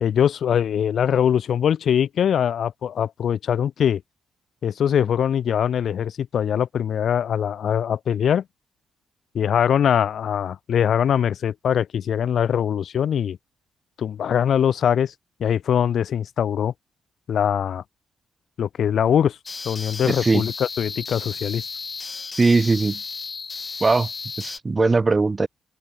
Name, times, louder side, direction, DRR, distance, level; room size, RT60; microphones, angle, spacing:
voice 1, 0.0-4.0 4.6-8.4 9.3-13.4 14.0-15.1 15.4-16.7 17.3-17.8 18.6-19.4 19.6-21.6, left 9 dB, 65° left, 0.7 m, -22 dB
sound 1, 19.5-24.6, left 4 dB, 35° left, 2.1 m, -34 dB
voice 2, 20.0-20.5 22.3-23.0 23.8-24.1 24.4-25.5, right 3 dB, 25° right, 0.5 m, -20 dB
open air
cardioid pair, 90°, 0 cm